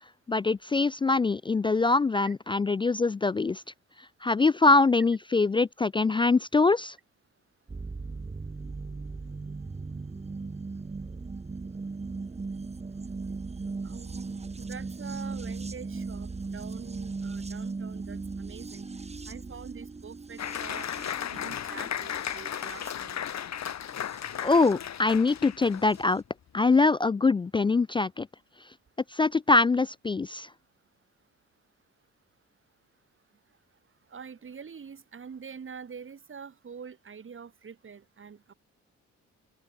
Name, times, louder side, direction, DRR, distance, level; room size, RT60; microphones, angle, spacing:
voice 1, 0.3-3.6 4.2-7.0 24.4-26.2 26.5-28.3 29.1-30.5, left 3 dB, 15° left, 0.3 m, -23 dB
sound 1, 7.7-24.7 25.9-26.0, right 4 dB, 20° right, 1.6 m, -38 dB
voice 2, 13.8-18.9 19.3-20.9 21.3-23.2 34.1-38.4, right 6 dB, 40° right, 7.0 m, -45 dB
Applause, 20.4-26.1, left 9 dB, 65° left, 6.8 m, -35 dB
open air
cardioid pair, 90°, 30 cm